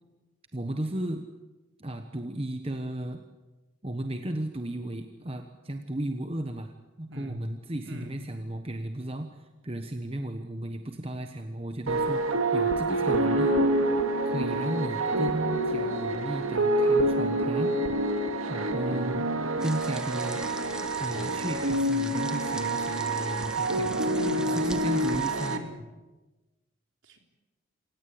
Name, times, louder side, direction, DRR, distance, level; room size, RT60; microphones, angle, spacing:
voice 1, 0.5-1.3 1.8-3.2 3.8-13.6 14.2-17.8 18.5-19.2 19.6-20.4 21.0-24.2 24.5-25.6, right 1 dB, 25° right, 6 dB, 1.2 m, -34 dB
voice 2, 7.1-7.4 7.8-8.3 18.9-19.1 24.1-24.6 25.5-25.9 27.0-27.2, equal, 60° right, 4 dB, 3.8 m, -41 dB
sound 1, 11.9-25.6, right 1 dB, 85° right, 2.2 m, -27 dB
sound 2, 19.6-25.6, right 1 dB, 5° right, 1.3 m, -42 dB
28.0 x 17.0 x 8.6 m, 1.1 s
head